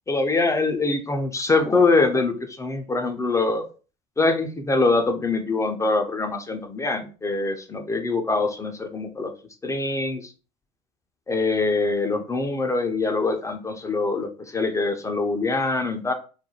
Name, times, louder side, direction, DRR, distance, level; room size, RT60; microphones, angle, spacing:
voice 1, 0.1-3.7 4.2-9.3 9.6-10.3 11.3-16.1, left 3 dB, 15° left, 5 dB, 0.5 m, -24 dB
2.4 x 2.1 x 3.0 m, 0.35 s
hypercardioid pair, 75°, 18 cm